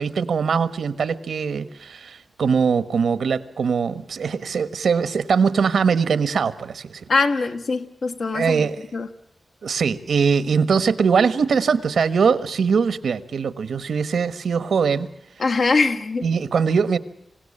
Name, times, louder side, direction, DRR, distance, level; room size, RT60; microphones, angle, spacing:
voice 1, 0.0-7.1 8.3-8.8 9.6-15.1 16.2-17.0, right 6 dB, 85° right, 14 dB, 1.3 m, -21 dB
voice 2, 7.1-9.1 15.4-16.2, left 3 dB, 55° left, 7 dB, 1.5 m, -22 dB
26.5 x 17.0 x 8.6 m, 0.79 s
wide cardioid pair, 180°, 0 cm